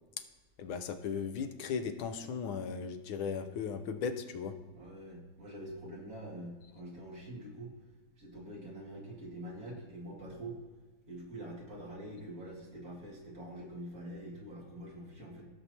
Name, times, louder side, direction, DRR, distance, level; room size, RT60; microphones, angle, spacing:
voice 1, 0.6-4.5, left 6 dB, 80° left, 9 dB, 1.6 m, -37 dB
voice 2, 4.7-7.7 8.2-10.6 11.1-15.5, right 1 dB, 45° right, -3 dB, 2.8 m, -45 dB
17.0 x 6.8 x 2.9 m, 1.3 s
omnidirectional pair, 2.2 m